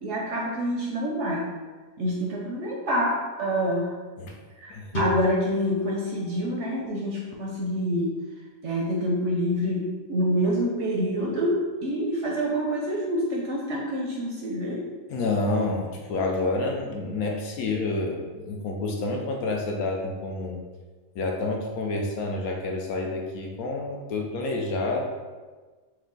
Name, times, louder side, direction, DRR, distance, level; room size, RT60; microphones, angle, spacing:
voice 1, 0.0-1.5 2.0-3.9 4.6-8.1 8.6-14.8, equal, 65° right, -2 dB, 0.8 m, -27 dB
sound 1, 4.9-8.3, left 2 dB, 35° left, 0.8 m, -33 dB
voice 2, 15.1-20.6 21.1-25.0, left 2 dB, 70° left, 1 dB, 1.0 m, -28 dB
4.5 x 2.1 x 3.8 m, 1.4 s
omnidirectional pair, 1.6 m